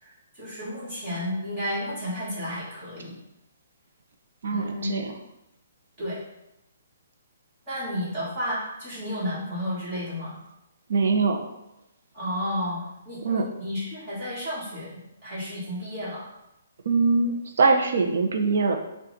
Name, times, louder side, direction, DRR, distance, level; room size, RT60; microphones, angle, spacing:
voice 1, 0.0-3.1 4.5-4.9 6.0-6.2 7.7-10.4 12.1-16.2, equal, 25° right, -9 dB, 1.6 m, -32 dB
voice 2, 4.4-5.1 10.9-11.5 13.2-13.5 16.9-18.8, right 4 dB, 60° right, 4 dB, 0.6 m, -23 dB
5.6 x 2.4 x 4.0 m, 0.88 s
hypercardioid pair, 165°, 0 cm